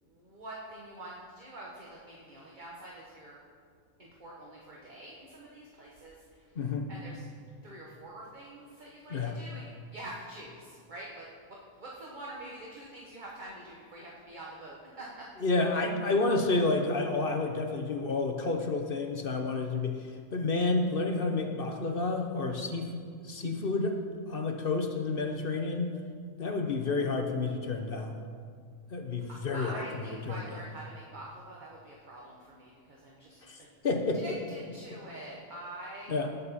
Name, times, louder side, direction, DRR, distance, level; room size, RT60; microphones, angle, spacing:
voice 1, 0.0-3.4 4.0-6.6 6.9-7.3 7.6-15.3 29.3-33.7 34.1-36.1, right 1 dB, 35° right, -4 dB, 1.4 m, -46 dB
voice 2, 6.6-6.9 9.1-9.4 15.4-22.9 23.2-23.9 24.3-25.9 26.4-28.2 28.9-30.4 33.4-34.2 36.1-36.3, left 3 dB, 45° left, 4 dB, 1.0 m, -30 dB
18.0 x 7.0 x 4.2 m, 2.1 s
omnidirectional pair, 1.4 m